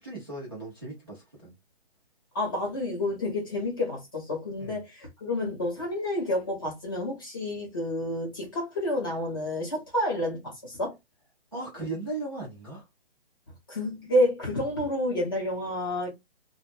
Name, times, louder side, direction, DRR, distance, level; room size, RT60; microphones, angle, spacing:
voice 1, 0.0-1.5 4.6-4.8 11.5-12.8, right 2 dB, 25° right, 0.5 m, -37 dB
voice 2, 2.3-11.0 13.7-16.1, left 1 dB, 20° left, 0.8 m, -29 dB
2.1 x 2.0 x 3.2 m
hypercardioid pair, 175°, 32 cm